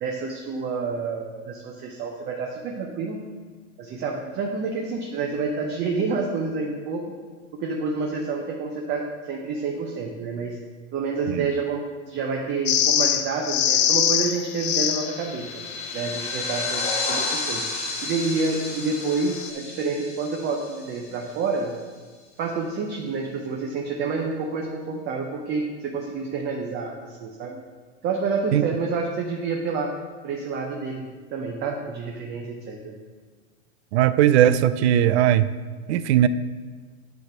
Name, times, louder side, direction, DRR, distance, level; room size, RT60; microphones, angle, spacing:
voice 1, 0.0-3.3 3.8-7.1 7.5-10.6 10.9-15.6 15.9-17.7 18.0-21.7 22.4-27.6 28.0-29.9 30.2-32.9, right 4 dB, 30° right, 1 dB, 0.7 m, -28 dB
sound 1, 12.7-15.2 19.2-19.5, left 10 dB, 85° left, 0.7 m, -22 dB
sound 2, 14.6-21.4, left 3 dB, 15° left, 1.6 m, -32 dB
voice 2, 33.9-35.5 35.9-36.3, right 11 dB, 65° right, 14 dB, 0.5 m, -18 dB
9.2 x 3.3 x 5.9 m, 1.5 s
hypercardioid pair, 130°, 37 cm